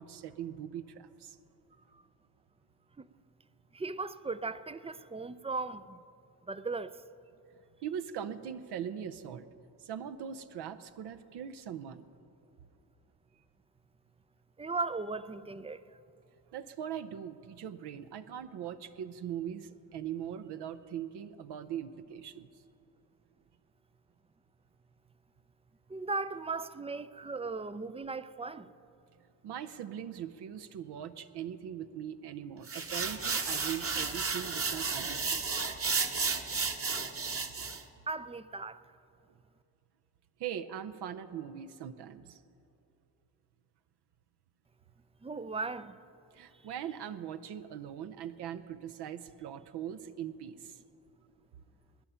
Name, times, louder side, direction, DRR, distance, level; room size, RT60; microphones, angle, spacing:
voice 1, 0.0-1.4 7.8-9.5 9.8-12.1 16.5-22.5 29.4-35.4 40.4-42.4 46.3-50.8, right 9 dB, 65° right, 0.7 m, -41 dB
voice 2, 3.7-6.0 6.5-7.0 14.6-15.8 25.9-28.7 38.1-38.8 45.2-46.0, right 3 dB, 15° right, 0.4 m, -37 dB
sound 1, 32.7-37.8, right 4 dB, 30° right, 1.2 m, -33 dB
20.0 x 10.0 x 5.6 m
supercardioid pair, 70°, 43 cm